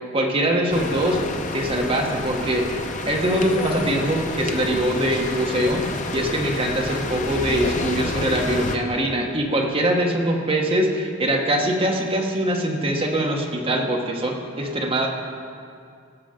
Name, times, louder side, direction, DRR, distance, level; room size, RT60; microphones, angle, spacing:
voice 1, 0.1-1.2 1.5-2.8 3.1-15.1, right 1 dB, 30° right, 1 dB, 1.2 m, -23 dB
sound 1, 0.7-8.8, left 2 dB, 40° left, 0.8 m, -29 dB
17.5 x 6.8 x 5.1 m, 2.3 s
head